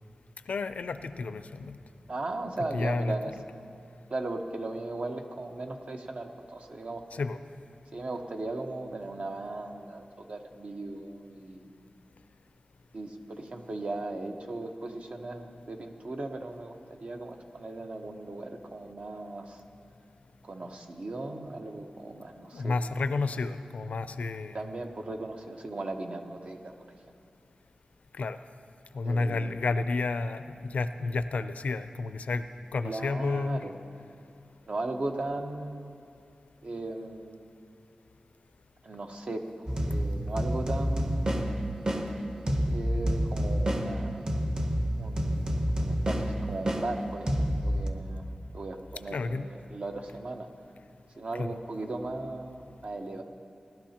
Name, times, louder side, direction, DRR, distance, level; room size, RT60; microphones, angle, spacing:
voice 1, 0.5-1.8 2.7-3.1 7.1-7.4 22.5-24.7 28.1-28.4 28.9-32.5 32.7-33.6 49.1-49.5 51.4-51.6, left 3 dB, 85° left, 11 dB, 0.5 m, -31 dB
voice 2, 2.1-3.3 4.1-7.0 7.9-11.8 12.9-19.6 20.4-22.7 24.5-26.7 29.0-29.5 32.8-34.0 34.7-35.9 36.6-37.4 38.8-41.5 42.6-44.3 45.0-47.3 47.6-50.5 51.2-53.2, right 2 dB, 60° right, 4 dB, 1.1 m, -37 dB
sound 1, 39.7-47.9, equal, 35° right, 1.0 m, -29 dB
18.5 x 12.0 x 2.9 m, 2.6 s
wide cardioid pair, 80°, 2 cm